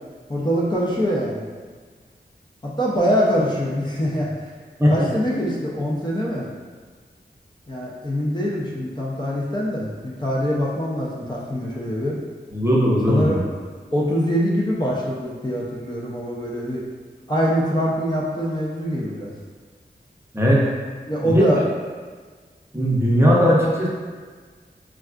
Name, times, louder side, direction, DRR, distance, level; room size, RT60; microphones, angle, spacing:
voice 1, 0.3-1.4 2.6-4.5 4.9-6.5 7.7-12.2 13.1-13.4 13.9-16.8 17.3-19.3 21.1-21.6, equal, 25° left, -6 dB, 0.5 m, -24 dB
voice 2, 12.5-13.4 20.3-20.6 21.2-21.4 22.7-23.9, equal, 15° right, -5 dB, 0.7 m, -18 dB
3.3 x 2.3 x 2.3 m, 1.5 s
wide cardioid pair, 50°, 17 cm